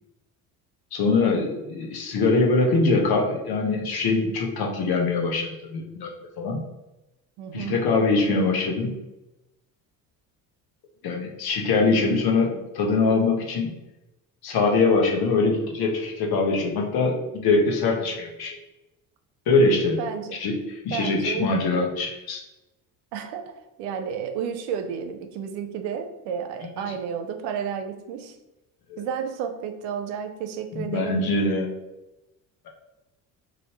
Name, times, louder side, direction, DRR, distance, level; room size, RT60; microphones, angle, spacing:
voice 1, 0.9-6.1 6.4-6.6 7.5-9.0 11.0-13.7 14.4-18.6 19.5-20.0 20.3-22.4 26.8-27.0 28.9-29.0 30.7-31.7, left 3 dB, 50° left, 0 dB, 1.0 m, -23 dB
voice 2, 7.4-7.8 20.0-20.4 20.9-21.5 21.7-21.9 23.1-23.5 23.8-28.4 29.0-31.3, right 7 dB, 70° right, 7 dB, 0.6 m, -31 dB
3.1 x 2.6 x 2.9 m, 0.98 s
hypercardioid pair, 65°, 46 cm